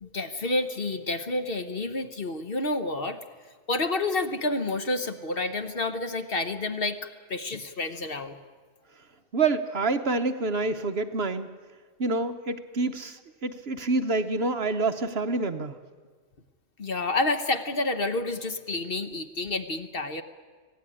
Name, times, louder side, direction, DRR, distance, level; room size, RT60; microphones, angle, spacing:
voice 1, 0.0-3.2 3.7-8.4 16.8-20.2, left 2 dB, 45° left, 8 dB, 1.3 m, -29 dB
voice 2, 9.3-11.5 12.0-15.8, right 3 dB, 50° right, 8 dB, 1.1 m, -27 dB
25.5 x 17.0 x 9.9 m, 1.5 s
omnidirectional pair, 1.4 m